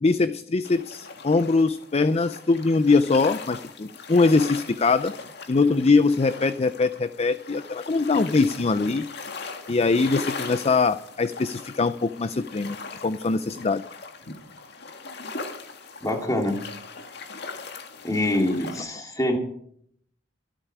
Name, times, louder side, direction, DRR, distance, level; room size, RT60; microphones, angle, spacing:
voice 1, 0.0-5.1 5.5-9.1 9.7-12.8 13.0-13.8, left 3 dB, 35° left, 13 dB, 0.5 m, -22 dB
sound 1, 0.6-18.8, left 4 dB, 60° left, 1.9 m, -39 dB
voice 2, 16.0-16.6 18.0-19.4, left 1 dB, 20° left, 2 dB, 2.8 m, -25 dB
24.0 x 9.0 x 4.8 m, 0.66 s
head